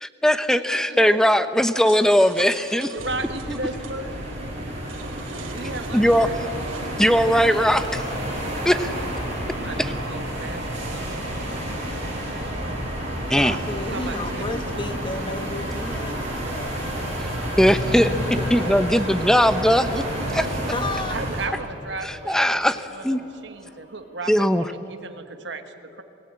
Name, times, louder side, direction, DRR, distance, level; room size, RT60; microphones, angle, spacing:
voice 1, 0.0-2.9 5.9-6.3 7.0-8.0 8.6-8.9 13.3-13.6 17.6-18.1 18.5-20.0 20.3-20.5 22.0-23.2 24.3-24.7, equal, 5° left, 11 dB, 0.7 m, -19 dB
voice 2, 0.5-1.3 2.9-4.1 5.5-6.4 9.5-11.2 13.4-13.6 13.9-14.9 21.1-26.0, right 3 dB, 65° right, 7 dB, 1.4 m, -35 dB
sound 1, 1.7-3.9 4.8-6.9, right 5 dB, 90° right, 2.6 m, -42 dB
sound 2, 3.0-21.5, right 1 dB, 35° right, 5.9 m, -30 dB
sound 3, 7.3-24.8, left 1 dB, 75° left, 7.3 m, -41 dB
voice 3, 13.2-17.1 17.9-19.0 20.3-21.2, left 2 dB, 25° left, 8 dB, 1.3 m, -33 dB
28.0 x 18.0 x 8.8 m, 3.0 s
head